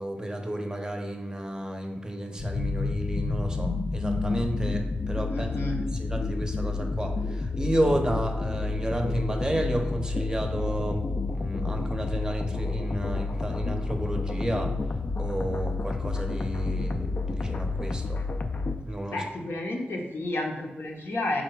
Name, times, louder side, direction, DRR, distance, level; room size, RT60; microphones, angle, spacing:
voice 1, 0.0-14.7 15.2-18.2 18.9-19.3, right 1 dB, 20° right, 3 dB, 0.6 m, -32 dB
sound 1, 2.4-18.8, left 3 dB, 45° left, 0.3 m, -30 dB
voice 2, 5.3-5.8 19.1-21.4, left 2 dB, 70° left, 0 dB, 0.7 m, -31 dB
3.8 x 2.2 x 4.5 m, 1.1 s
cardioid pair, 50°, 4 cm